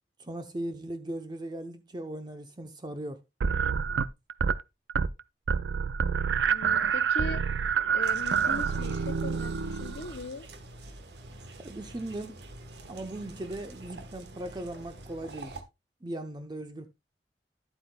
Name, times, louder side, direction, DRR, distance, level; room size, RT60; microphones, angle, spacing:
voice 1, 0.2-3.2 11.6-12.4 12.9-15.5 16.0-16.9, right 1 dB, 25° right, 0.7 m, -38 dB
sound 1, 3.4-4.6 4.9-5.2 5.5-10.2, right 6 dB, 85° right, 0.4 m, -27 dB
voice 2, 6.5-7.4 7.9-10.5, left 3 dB, 70° left, 0.8 m, -39 dB
sound 2, 8.0-15.6, right 2 dB, 70° right, 1.2 m, -46 dB
11.0 x 8.1 x 2.3 m
head